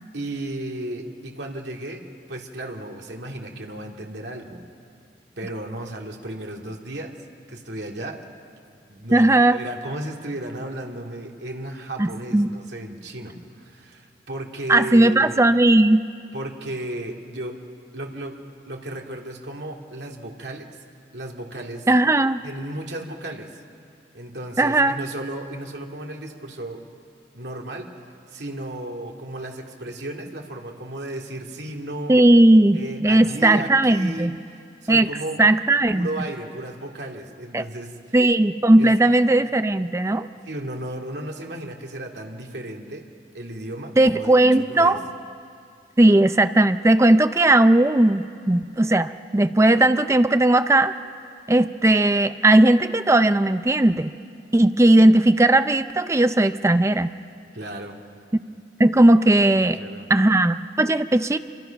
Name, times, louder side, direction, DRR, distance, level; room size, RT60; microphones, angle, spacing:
voice 1, 0.1-4.6 5.4-7.1 7.5-8.2 8.9-15.4 16.3-17.6 17.9-18.4 18.7-20.7 21.1-21.9 22.4-23.6 24.1-26.8 27.3-27.9 28.3-32.1 32.7-35.4 35.9-38.1 38.8-38.9 40.4-43.1 43.3-45.0 57.5-58.0 59.5-60.1, right 1 dB, 80° right, 1 dB, 2.4 m, -34 dB
voice 2, 9.1-9.6 12.0-12.5 14.7-16.0 21.9-22.4 24.6-25.0 32.1-34.4 34.9-35.1 35.4-36.1 37.5-37.6 38.1-40.3 44.0-45.0 46.0-50.9 51.5-54.1 54.5-57.1 58.8-59.8 60.1-61.4, right 1 dB, 15° right, 11 dB, 0.5 m, -17 dB
27.5 x 24.5 x 5.8 m, 2.4 s
head